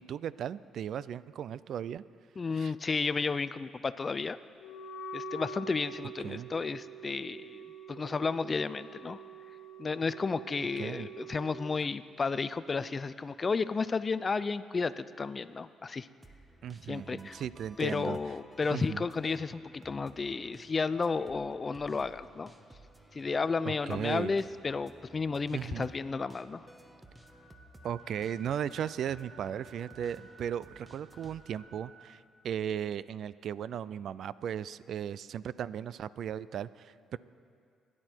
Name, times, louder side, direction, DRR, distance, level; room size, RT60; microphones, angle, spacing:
voice 1, 0.0-2.0 2.5-2.7 6.2-6.5 10.6-11.1 16.6-18.2 18.7-19.0 23.6-24.3 25.5-25.9 27.8-37.2, right 9 dB, 65° right, 18 dB, 0.4 m, -36 dB
voice 2, 2.4-4.4 5.1-9.2 9.8-16.1 16.9-17.4 17.8-22.5 23.1-26.7, left 4 dB, 35° left, 15 dB, 0.5 m, -32 dB
Wind instrument woodwind instrument, 4.6-11.6, right 3 dB, 75° left, 1.1 m, -45 dB
sound 1, 16.2-31.6, right 1 dB, 15° right, 1.4 m, -56 dB
sound 2, 27.0-32.0, right 3 dB, 30° right, 5.4 m, -56 dB
27.5 x 11.0 x 4.5 m, 2.3 s
cardioid pair, 90°, 0 cm